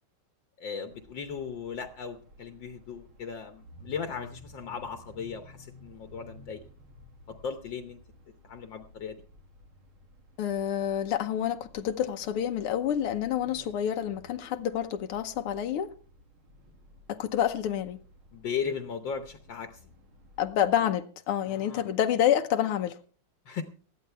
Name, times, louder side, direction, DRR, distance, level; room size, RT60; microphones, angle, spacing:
voice 1, 0.6-6.6 7.3-8.0 8.4-9.2 13.4-13.7 18.3-19.8 21.5-21.9 23.4-23.6, left 6 dB, 65° left, 1.6 m, -37 dB
sound 1, 0.9-20.8, equal, 70° right, 3.0 m, -55 dB
voice 2, 10.4-15.9 17.1-18.0 20.4-23.0, left 10 dB, 90° left, 1.8 m, -28 dB
19.0 x 13.5 x 3.4 m
omnidirectional pair, 2.4 m